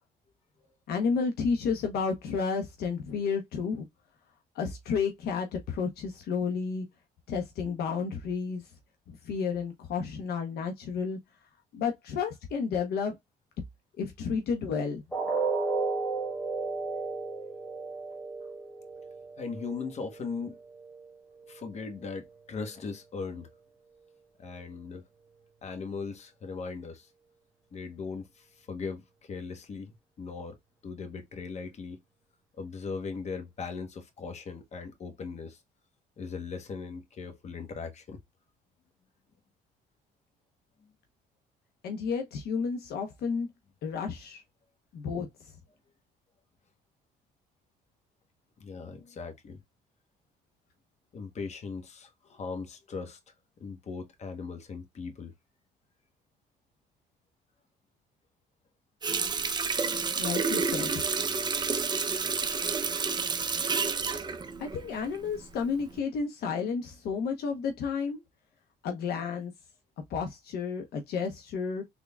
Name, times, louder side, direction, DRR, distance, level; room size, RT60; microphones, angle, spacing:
voice 1, 0.9-3.9 4.5-6.9 7.3-8.6 9.1-11.2 11.7-13.1 14.0-15.0 41.8-43.5 43.8-44.4 44.9-45.3 60.2-61.0 64.6-68.2 68.8-69.5 70.1-71.8, left 5 dB, 70° left, 1.0 m, -31 dB
sound 1, 15.1-21.1 21.5-21.7 22.1-22.2, right 4 dB, 5° left, 1.3 m, -34 dB
voice 2, 19.4-20.6 21.5-23.5 24.4-25.0 25.6-27.1 27.7-30.6 30.8-32.0 32.6-35.6 36.2-38.2 40.8-40.9 48.6-49.6 51.1-53.2 53.6-55.3, left 5 dB, 40° left, 1.4 m, -39 dB
Water tap faucet, 59.0-65.4 65.8-66.0, right 5 dB, 25° right, 0.6 m, -30 dB
3.7 x 3.5 x 2.3 m
cardioid pair, 110°, 17 cm